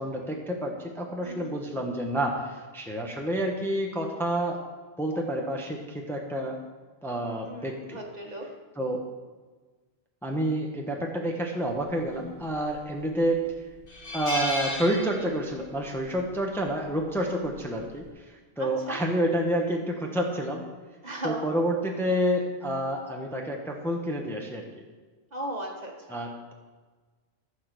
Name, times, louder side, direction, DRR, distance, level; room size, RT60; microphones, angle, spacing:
voice 1, 0.0-4.6 5.0-6.6 7.0-8.0 8.7-9.1 10.2-13.5 14.1-20.6 21.2-24.6 26.1-26.5, right 1 dB, ahead, 1 dB, 1.0 m, -29 dB
voice 2, 7.4-8.4 18.6-19.0 21.0-21.5 25.3-26.2, right 1 dB, 40° right, 1 dB, 1.5 m, -37 dB
sound 1, 12.5-13.0 13.4-13.5 13.9-15.7 16.0-16.2 17.4-17.7, left 1 dB, 55° left, 3.0 m, -33 dB
14.0 x 4.9 x 6.7 m, 1.4 s
omnidirectional pair, 1.1 m